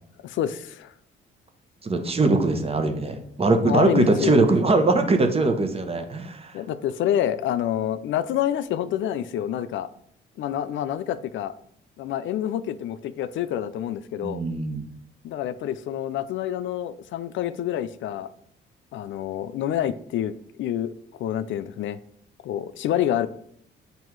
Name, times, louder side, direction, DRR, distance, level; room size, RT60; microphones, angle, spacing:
voice 1, 0.2-0.9 3.6-4.4 6.5-9.9 10.4-11.5 12.0-14.4 15.2-18.3 18.9-20.9 21.2-22.0 22.4-23.3, left 10 dB, 75° left, 13 dB, 0.4 m, -27 dB
voice 2, 1.8-6.5 14.2-14.8, right 3 dB, 30° right, 5 dB, 0.9 m, -21 dB
7.7 x 2.7 x 4.6 m, 0.68 s
cardioid pair, 90°, 20 cm